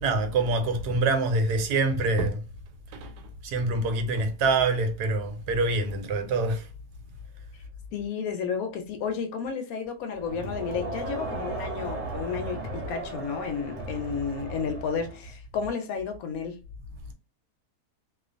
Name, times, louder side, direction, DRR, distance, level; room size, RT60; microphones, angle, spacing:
voice 1, 0.0-2.4 2.9-6.7, right 3 dB, 85° right, 1.2 m, -26 dB
voice 2, 7.9-16.6, left 6 dB, 70° left, 1.0 m, -32 dB
Crowd, 10.2-15.3, right 2 dB, 55° right, 0.9 m, -36 dB
2.4 x 2.4 x 2.5 m
omnidirectional pair, 1.7 m